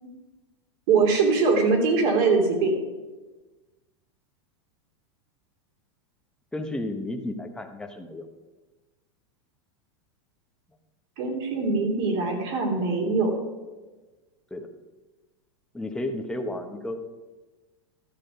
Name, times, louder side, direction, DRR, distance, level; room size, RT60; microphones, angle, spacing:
voice 1, 0.9-2.8 11.2-13.3, right 4 dB, 55° right, 2 dB, 3.0 m, -22 dB
voice 2, 6.5-8.3 14.5-14.7 15.7-17.0, left 1 dB, 5° left, 4 dB, 1.0 m, -32 dB
12.5 x 7.6 x 5.2 m, 1.2 s
supercardioid pair, 140°, 15 cm